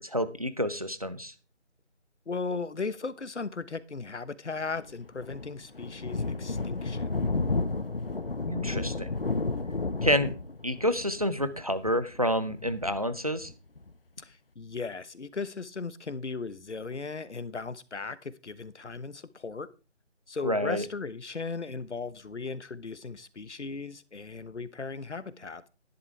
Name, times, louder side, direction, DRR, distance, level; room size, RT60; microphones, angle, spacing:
voice 1, 0.0-1.3 8.5-9.1 10.0-10.3 10.6-13.5 20.4-20.8, equal, 30° right, 0.7 m, -28 dB
voice 2, 2.3-7.3 14.2-19.7 20.3-25.7, left 4 dB, 70° left, 1.2 m, -37 dB
Thunder, 4.8-13.9, left 3 dB, 50° left, 0.8 m, -32 dB
11.5 x 11.0 x 3.3 m
figure-of-eight pair, 175°, 36 cm